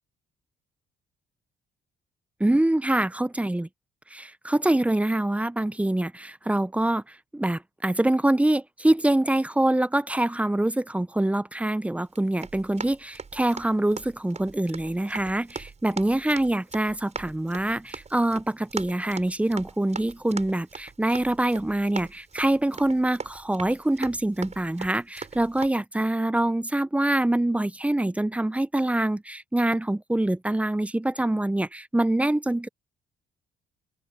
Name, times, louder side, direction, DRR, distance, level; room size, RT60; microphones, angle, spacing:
voice 1, 2.4-3.7 4.1-7.0 7.3-32.7, right 1 dB, 5° right, 0.5 m, -25 dB
Run, 12.1-25.7, right 5 dB, 35° right, 5.9 m, -41 dB
cardioid pair, 90°, 20 cm